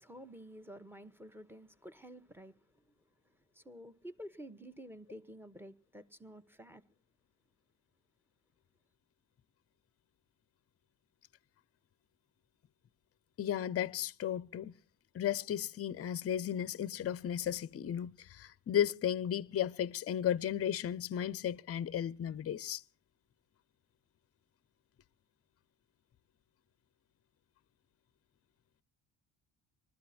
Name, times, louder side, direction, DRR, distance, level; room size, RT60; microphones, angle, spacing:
voice 1, 0.0-2.6 3.5-6.8, equal, 5° right, 1.1 m, -50 dB
voice 2, 13.4-14.7 15.1-22.8, left 10 dB, 35° left, 0.6 m, -34 dB
20.0 x 13.0 x 4.3 m
supercardioid pair, 70°, 40 cm